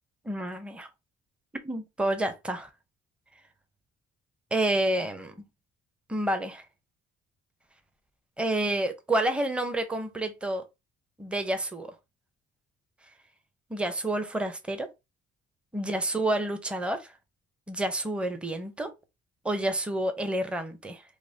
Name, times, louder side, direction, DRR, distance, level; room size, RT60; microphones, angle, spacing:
voice 1, 0.2-0.9 1.6-2.7 4.5-5.3 6.1-6.6 8.4-10.6 11.2-11.9 13.7-14.9 15.7-17.1 17.7-18.9 19.4-21.0, right 1 dB, 5° right, 0.7 m, -29 dB
4.7 x 2.0 x 2.7 m
cardioid pair, 90°, 30 cm